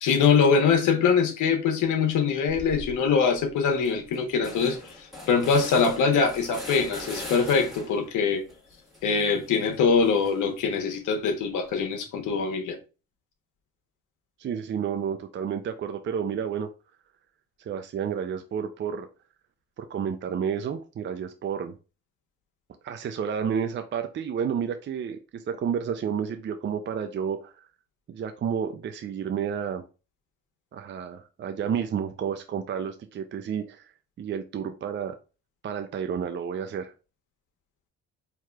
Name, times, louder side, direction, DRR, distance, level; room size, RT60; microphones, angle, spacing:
voice 1, 0.0-4.8 5.3-8.4 9.0-12.8, left 5 dB, 80° left, 1.1 m, -23 dB
sound 1, 2.5-3.0 3.4-3.5 3.7-8.1 8.5-10.6, left 2 dB, ahead, 1.8 m, -41 dB
voice 2, 14.4-16.7 17.6-19.1 19.8-21.8 22.8-27.7 28.1-29.8 30.7-33.8 34.2-35.2 35.6-36.9, right 7 dB, 40° right, 0.4 m, -31 dB
4.6 x 2.9 x 2.3 m
cardioid pair, 90°, 30 cm